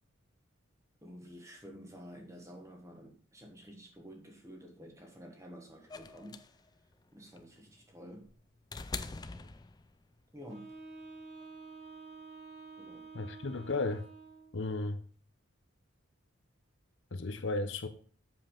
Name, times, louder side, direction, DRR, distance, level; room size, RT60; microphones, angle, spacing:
voice 1, 1.0-6.4 7.1-8.3 9.2-9.5 10.3-10.7 12.8-13.0, equal, 15° right, 1.3 m, -50 dB
sound 1, 5.9-10.2 11.4-11.5, left 4 dB, 20° left, 0.3 m, -44 dB
Wind instrument woodwind instrument, 10.5-14.6, right 4 dB, 55° right, 2.4 m, -49 dB
voice 2, 13.1-14.1 14.5-15.0 17.1-17.9, left 3 dB, 65° left, 0.8 m, -34 dB
7.6 x 6.9 x 3.8 m
head